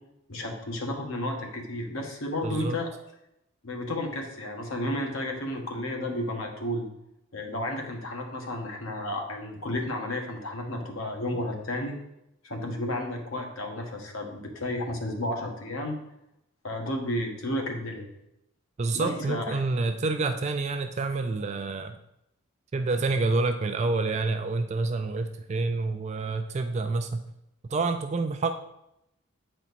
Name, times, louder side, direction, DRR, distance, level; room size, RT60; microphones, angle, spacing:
voice 1, 0.3-2.9 3.6-6.9 7.3-11.9 12.4-16.0 16.6-18.1 18.9-19.6, left 1 dB, 75° left, 2 dB, 1.3 m, -32 dB
voice 2, 2.4-2.8 18.8-22.0 22.7-27.2 27.7-28.5, right 3 dB, 30° right, 7 dB, 0.3 m, -28 dB
8.1 x 4.4 x 4.1 m, 0.83 s
head